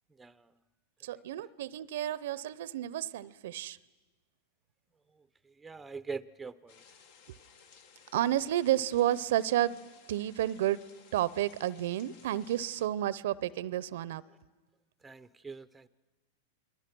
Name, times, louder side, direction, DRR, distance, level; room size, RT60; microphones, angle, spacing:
voice 1, 0.2-0.5 5.5-6.8 15.0-15.9, right 4 dB, 10° right, 15 dB, 0.6 m, -43 dB
voice 2, 1.0-3.8 8.1-10.8 11.1-14.2, right 13 dB, 70° right, 20 dB, 0.6 m, -31 dB
sound 1, 6.7-12.9, left 6 dB, 60° left, 1.6 m, -59 dB
29.5 x 21.0 x 6.1 m, 1.2 s
hypercardioid pair, 110°, 0 cm